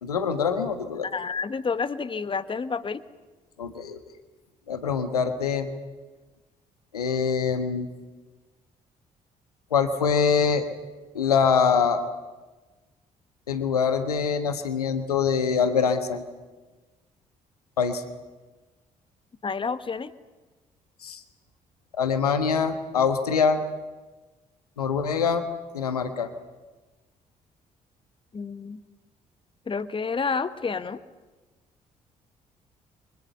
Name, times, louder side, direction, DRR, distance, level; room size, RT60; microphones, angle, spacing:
voice 1, 0.0-1.1 3.6-4.0 4.7-5.7 6.9-7.9 9.7-10.6 11.1-12.0 13.5-16.2 17.8-18.0 21.0-21.2 21.9-23.6 24.8-25.4 25.7-26.3, left 6 dB, 80° left, 9 dB, 1.4 m, -24 dB
voice 2, 1.0-3.0 19.4-20.1 28.3-28.8 29.7-31.0, left 5 dB, 25° left, 13 dB, 1.3 m, -29 dB
30.0 x 24.5 x 7.0 m, 1.2 s
figure-of-eight pair, 45°, 19 cm